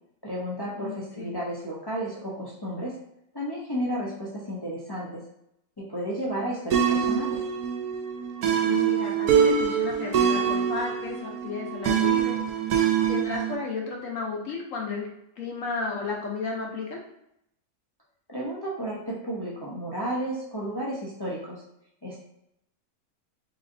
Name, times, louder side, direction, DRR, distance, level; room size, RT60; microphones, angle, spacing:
voice 1, 0.2-2.9 3.3-5.2 5.8-7.4 18.3-21.6 22.0-22.2, right 1 dB, 35° left, -5 dB, 0.4 m, -32 dB
voice 2, 0.8-1.3 8.6-12.4 12.7-12.8 13.1-15.1 15.4-17.0, left 4 dB, 60° left, 0 dB, 1.1 m, -33 dB
sound 1, 6.7-13.6, right 7 dB, 80° right, 1.0 m, -24 dB
3.8 x 3.2 x 2.6 m, 0.78 s
omnidirectional pair, 1.6 m